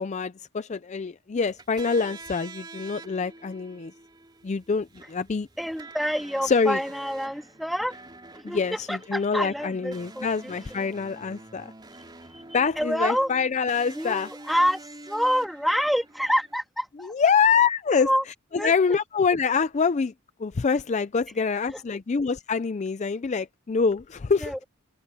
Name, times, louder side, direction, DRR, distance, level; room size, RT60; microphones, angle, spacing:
voice 1, 0.0-3.9 4.4-5.5 6.4-6.8 8.4-11.7 12.5-14.3 17.0-18.1 18.5-20.1 20.4-24.6, left 5 dB, 30° left, 0.4 m, -25 dB
sound 1, 1.4-16.6, right 2 dB, 20° right, 4.1 m, -47 dB
voice 2, 5.6-8.0 8.3-10.9 12.3-12.4 12.8-13.3 13.9-14.8 15.1-17.1 17.9-18.2 18.5-19.0 21.7-21.8 24.4-24.6, equal, ahead, 2.9 m, -27 dB
head